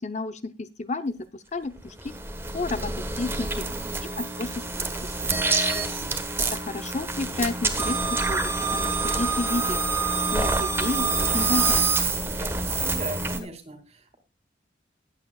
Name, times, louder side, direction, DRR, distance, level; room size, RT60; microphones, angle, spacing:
voice 1, 0.0-2.1 2.5-2.9 3.2-3.6 4.0-5.4 6.5-9.8 10.3-11.8, left 3 dB, 40° left, 10 dB, 0.7 m, -32 dB
sound 1, 1.8-13.4, right 3 dB, 15° right, 1.3 m, -26 dB
voice 2, 3.6-4.1 5.3-6.2 12.1-14.2, right 1 dB, 35° right, 7 dB, 2.5 m, -40 dB
20.5 x 8.7 x 2.3 m, 0.26 s
head